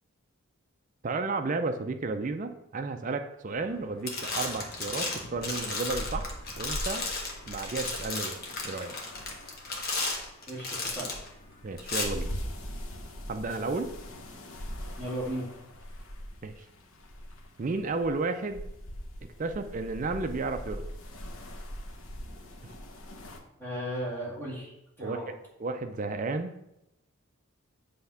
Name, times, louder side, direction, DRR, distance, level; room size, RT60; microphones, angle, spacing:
voice 1, 1.0-7.1 7.5-8.4 8.6-8.9 11.6-12.3 13.3-13.9 16.4-16.6 17.6-18.6 19.4-20.9 22.6-22.7 25.0-25.3 25.6-26.5, right 3 dB, 35° right, 7 dB, 0.4 m, -32 dB
sound 1, 3.5-3.8 4.0-11.3 11.8-12.0, left 3 dB, 45° left, 1.3 m, -34 dB
sound 2, 5.4-23.4, equal, 70° left, 0.9 m, -42 dB
voice 2, 10.5-11.1 15.0-15.5 23.6-25.3, equal, 10° left, -7 dB, 2.3 m, -36 dB
7.6 x 3.5 x 5.6 m, 0.86 s
head